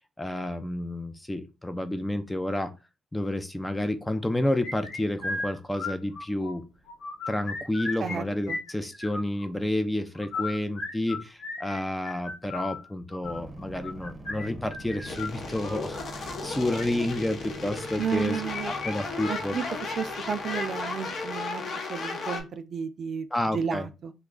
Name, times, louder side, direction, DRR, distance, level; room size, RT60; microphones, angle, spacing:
voice 1, 0.2-2.7 3.1-6.6 7.3-19.6 23.3-23.9, left 1 dB, 10° left, 0.5 m, -30 dB
sound 1, 4.6-6.5 6.9-8.2 8.4-9.5 10.1-15.8 16.5-16.8 18.1-18.9 19.2-19.3 19.7-19.8 20.4-20.8, left 3 dB, 75° left, 1.3 m, -36 dB
voice 2, 8.0-8.6 18.0-18.7 19.3-19.6 20.0-23.3 23.5-24.1, right 6 dB, 55° right, 0.4 m, -32 dB
sound 2, 13.2-21.8, right 2 dB, 20° right, 0.8 m, -45 dB
sound 3, 15.1-22.4, left 3 dB, 60° left, 0.9 m, -35 dB
3.1 x 2.3 x 3.7 m
cardioid pair, 90°, 0 cm